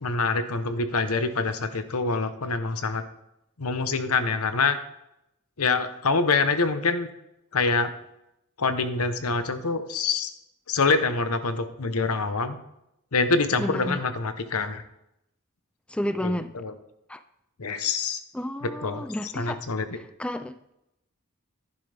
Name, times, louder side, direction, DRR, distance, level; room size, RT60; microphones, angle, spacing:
voice 1, 0.0-3.0 3.6-4.8 5.6-7.1 7.5-7.9 8.6-10.3 10.7-12.6 13.1-14.8 16.2-16.7 17.6-18.2 18.6-19.9, left 4 dB, 85° left, 10 dB, 0.9 m, -25 dB
voice 2, 13.6-14.0 15.9-16.6 17.1-17.2 18.3-19.6 19.9-20.6, left 1 dB, 5° left, 11 dB, 0.3 m, -31 dB
11.5 x 10.5 x 3.4 m, 0.84 s
head